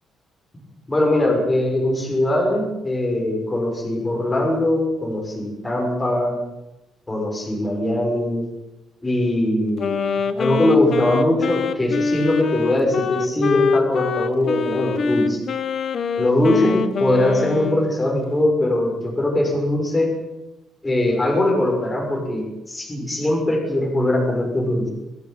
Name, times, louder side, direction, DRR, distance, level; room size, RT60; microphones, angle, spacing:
voice 1, 0.9-6.4 7.1-8.5 9.0-10.0 10.4-15.4 16.2-20.1 20.8-24.9, left 1 dB, 10° left, 0 dB, 6.2 m, -21 dB
Wind instrument woodwind instrument, 9.8-18.0, left 5 dB, 40° left, 1.4 m, -24 dB
23.0 x 16.5 x 9.3 m, 0.98 s
cardioid pair, 180°, 0 cm